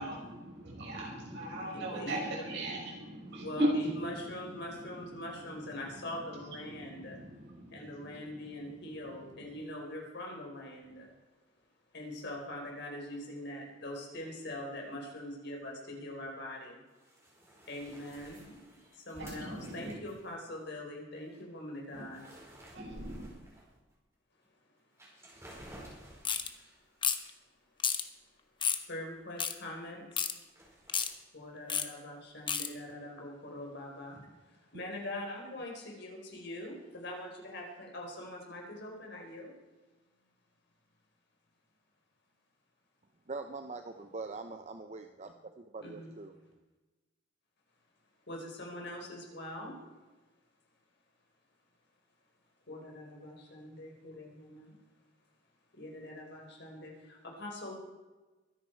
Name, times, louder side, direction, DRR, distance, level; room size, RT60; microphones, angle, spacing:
voice 1, 0.0-3.9 5.1-5.3 6.6-8.2 19.2-19.9 21.9-22.0 22.7-23.3, right 1 dB, 65° right, -3 dB, 5.8 m, -37 dB
voice 2, 1.7-2.2 3.4-7.2 7.7-11.1 11.9-16.8 17.7-18.5 18.9-22.3 28.9-30.3 31.3-39.5 45.8-46.1 48.3-49.8 52.7-54.8 55.7-57.8, left 1 dB, 60° left, 0 dB, 4.6 m, -43 dB
sound 1, 16.9-20.8 21.3-21.4 21.7-23.9 24.4-24.5 24.9-26.8 30.5-31.0, right 1 dB, 15° right, 4.9 m, -52 dB
sound 2, 26.2-26.5 27.0-27.3 27.8-28.0 28.6-28.8 29.4-29.5 30.2-30.3 30.9-31.1 31.7-31.9 32.5-32.7, left 7 dB, 25° left, 1.0 m, -30 dB
voice 3, 43.3-46.3, right 3 dB, 35° right, 7 dB, 0.7 m, -43 dB
23.0 x 10.5 x 4.6 m, 1.2 s
head